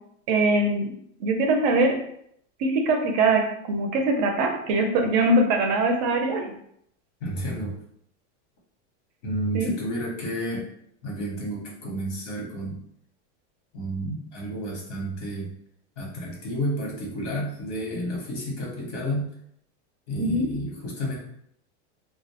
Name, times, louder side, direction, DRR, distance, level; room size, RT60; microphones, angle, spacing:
voice 1, 0.3-0.9 1.2-2.0 2.6-6.5 9.5-9.7 20.2-20.5, right 2 dB, 40° right, 3 dB, 0.4 m, -22 dB
voice 2, 7.2-7.7 9.2-10.7 11.0-12.8 13.7-15.5 16.0-19.3 20.1-21.2, equal, 85° left, -2 dB, 1.1 m, -31 dB
2.2 x 2.0 x 2.8 m, 0.71 s
supercardioid pair, 170°, 35 cm